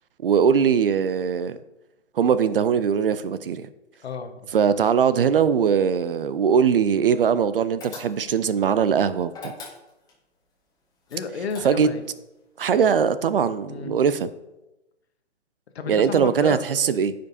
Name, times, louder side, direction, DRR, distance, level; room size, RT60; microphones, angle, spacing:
voice 1, 0.2-1.6 2.2-3.7 4.5-9.5 11.6-11.9 12.6-14.3 15.9-17.1, right 7 dB, 50° right, 14 dB, 0.5 m, -21 dB
voice 2, 4.0-4.5 11.1-12.0 13.7-13.9 15.7-16.6, left 5 dB, 60° left, 7 dB, 1.2 m, -32 dB
sound 1, 7.8-8.5 9.3-10.2 11.1-12.1, left 3 dB, 10° left, 1.4 m, -40 dB
14.5 x 5.1 x 2.7 m, 0.97 s
figure-of-eight pair, 135°, 36 cm